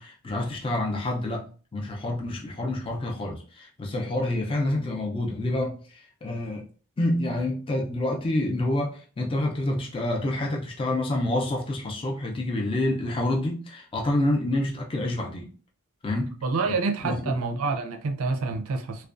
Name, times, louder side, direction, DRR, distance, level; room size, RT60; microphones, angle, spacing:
voice 1, 0.0-6.6 7.0-15.5 16.0-16.3 16.7-16.8 17.0-17.3, left 1 dB, 25° left, 0.4 m, -28 dB
voice 2, 16.4-19.1, right 4 dB, 70° right, 0.4 m, -27 dB
2.4 x 2.1 x 2.4 m
head